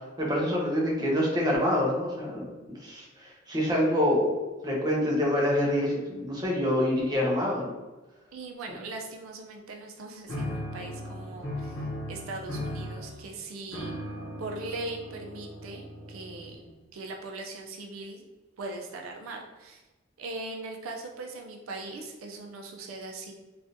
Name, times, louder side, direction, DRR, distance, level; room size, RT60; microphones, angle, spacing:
voice 1, 0.2-2.5 2.8-7.7, left 1 dB, 20° right, -3 dB, 0.7 m, -26 dB
voice 2, 8.3-13.9 14.4-16.6 16.9-18.2 18.6-19.8 20.2-23.3, right 2 dB, 90° right, 2 dB, 0.5 m, -40 dB
sound 1, 10.3-16.8, left 1 dB, 70° left, 0.8 m, -37 dB
3.5 x 2.4 x 2.6 m, 1.2 s
head